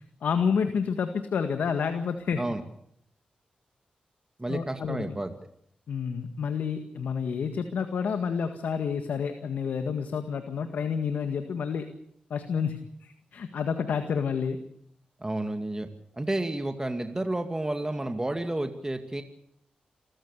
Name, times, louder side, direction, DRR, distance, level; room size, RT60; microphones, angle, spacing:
voice 1, 0.2-2.4 4.5-5.2 5.9-11.9 12.3-14.6, left 6 dB, 85° left, 7 dB, 1.8 m, -29 dB
voice 2, 4.4-5.3 15.2-15.9 16.1-19.2, right 1 dB, 20° right, 6 dB, 2.3 m, -31 dB
27.5 x 14.5 x 8.4 m, 0.73 s
cardioid pair, 50°, 3 cm